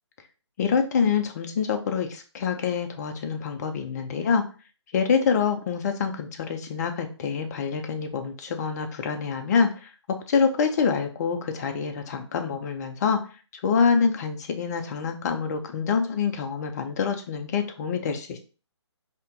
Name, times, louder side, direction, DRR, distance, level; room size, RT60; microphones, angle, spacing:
voice 1, 0.6-4.4 4.9-9.9 10.3-13.2 13.6-18.4, left 6 dB, 35° left, 5 dB, 0.7 m, -26 dB
4.2 x 3.0 x 3.7 m, 0.36 s
figure-of-eight pair, 145°, 15 cm